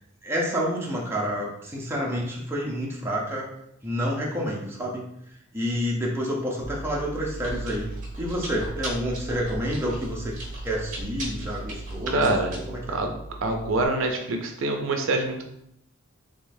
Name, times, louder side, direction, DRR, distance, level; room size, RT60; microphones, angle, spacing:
voice 1, 0.2-3.5 3.8-5.1 5.5-7.9 8.2-10.4 10.6-12.9, equal, 10° right, -3 dB, 0.6 m, -29 dB
Chewing mastication, 6.6-13.8, right 2 dB, 40° right, 1.2 m, -36 dB
voice 2, 12.1-12.5 12.9-13.1 13.4-15.5, right 2 dB, 65° right, 3 dB, 0.5 m, -25 dB
3.6 x 3.3 x 2.6 m, 0.77 s
head